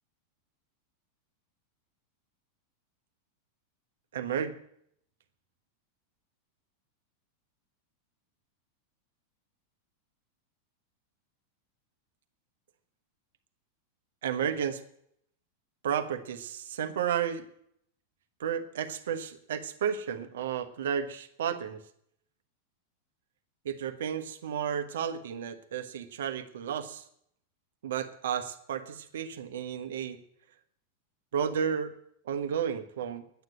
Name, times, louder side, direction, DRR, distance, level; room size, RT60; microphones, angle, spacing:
voice 1, 4.1-4.6 14.2-14.8 15.8-17.5 18.4-21.8 23.6-27.0 27.8-30.2 31.3-31.9 32.2-33.2, right 8 dB, 60° right, 9 dB, 1.3 m, -32 dB
10.5 x 9.4 x 9.0 m, 0.69 s
figure-of-eight pair, 90°, 0 cm